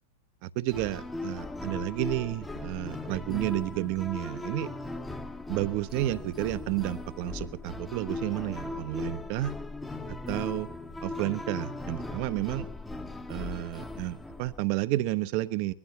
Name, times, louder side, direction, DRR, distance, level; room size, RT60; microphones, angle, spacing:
voice 1, 0.4-4.7 5.5-9.5 10.1-10.7 11.0-12.7 13.3-15.7, right 16 dB, 45° right, 14 dB, 0.8 m, -31 dB
sound 1, 0.7-14.6, left 2 dB, 5° left, 1.0 m, -38 dB
20.0 x 12.5 x 5.7 m, 0.43 s
figure-of-eight pair, 95°, 0 cm